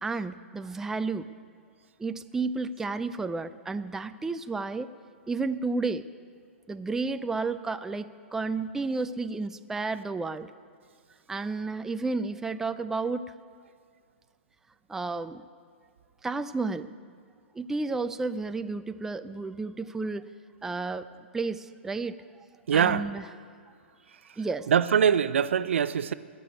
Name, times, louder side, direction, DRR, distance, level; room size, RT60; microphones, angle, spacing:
voice 1, 0.0-1.3 2.0-4.9 5.3-6.0 6.7-10.5 11.3-13.2 14.9-15.4 16.2-16.9 17.6-20.3 20.6-21.1 21.3-22.2 22.7-23.3 24.4-24.7, right 3 dB, 5° right, 0.4 m, -31 dB
voice 2, 22.7-23.0 24.7-26.1, right 8 dB, 70° right, 0.5 m, -23 dB
18.5 x 6.9 x 9.2 m
hypercardioid pair, 125°, 7 cm